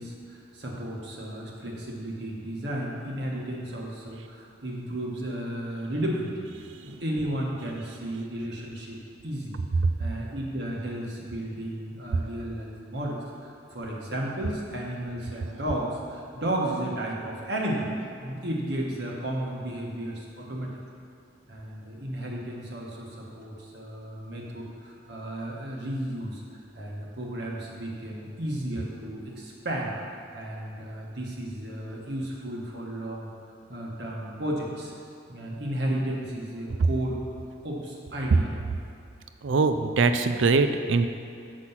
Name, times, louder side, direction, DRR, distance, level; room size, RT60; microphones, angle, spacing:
voice 1, 0.0-6.3 6.8-9.0 9.2-9.6 10.0-17.9 18.2-20.7 21.5-29.9 30.3-33.3 33.7-34.9 35.3-37.2 37.6-38.5, right 1 dB, 60° right, -3 dB, 1.5 m, -33 dB
voice 2, 39.4-41.1, right 4 dB, 85° right, 9 dB, 0.5 m, -23 dB
7.6 x 6.3 x 5.7 m, 2.5 s
head